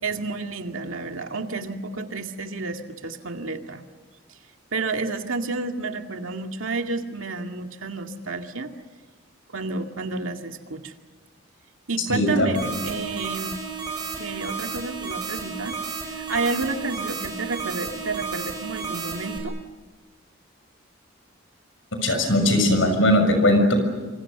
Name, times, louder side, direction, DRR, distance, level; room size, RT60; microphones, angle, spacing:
voice 1, 0.0-3.8 4.7-8.7 9.5-10.9 11.9-13.6 14.2-15.8 16.1-19.5, right 3 dB, 85° right, 5 dB, 2.1 m, -30 dB
voice 2, 12.1-12.7 22.0-23.7, left 1 dB, 75° left, 6 dB, 6.5 m, -19 dB
sound 1, 12.5-19.4, right 4 dB, 20° right, 6.4 m, -33 dB
27.5 x 26.0 x 6.7 m, 1.4 s
head